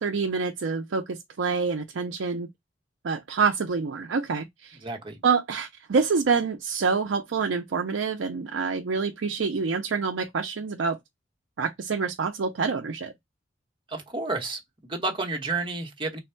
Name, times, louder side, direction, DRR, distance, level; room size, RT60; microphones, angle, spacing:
voice 1, 0.0-2.5 3.0-4.8 5.2-11.0 11.6-13.1, right 5 dB, 70° right, 0.5 m, -27 dB
voice 2, 4.8-5.2 13.9-16.2, right 3 dB, 25° right, 0.9 m, -31 dB
3.4 x 2.2 x 4.3 m
head